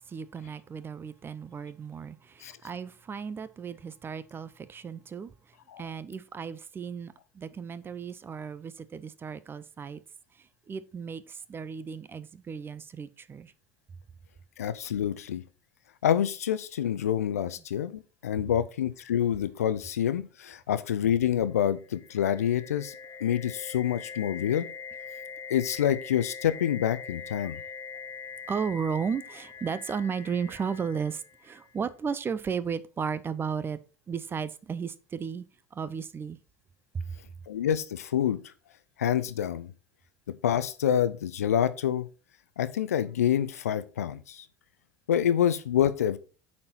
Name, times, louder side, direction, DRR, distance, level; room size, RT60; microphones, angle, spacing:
voice 1, 0.1-5.3 5.8-10.0 10.3-13.5 28.5-33.8 34.1-35.4 35.7-36.4 36.9-37.1, right 6 dB, 25° right, 0.6 m, -34 dB
voice 2, 14.6-15.4 16.0-22.9 23.2-24.7 25.5-27.6 37.5-38.4 39.0-39.7 40.4-42.1 42.6-44.5 45.1-46.2, left 10 dB, 75° left, 0.5 m, -27 dB
sound 1, 21.8-31.6, left 6 dB, 40° left, 1.0 m, -43 dB
8.6 x 4.3 x 4.3 m
figure-of-eight pair, 65°, 8 cm